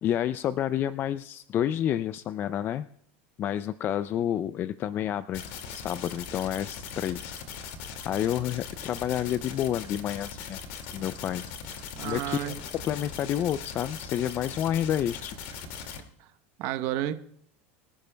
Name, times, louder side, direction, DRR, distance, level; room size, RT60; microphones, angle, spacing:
voice 1, 0.0-2.9 3.4-5.4 5.7-7.4 8.1-10.6 10.9-11.4 12.0-15.4, left 10 dB, 35° left, 15 dB, 0.4 m, -29 dB
sound 1, 5.3-16.0, left 6 dB, 65° left, 2.1 m, -40 dB
voice 2, 12.0-12.6 16.6-17.1, right 13 dB, 55° right, 9 dB, 0.9 m, -30 dB
24.0 x 10.5 x 2.2 m, 0.66 s
supercardioid pair, 130°, 6 cm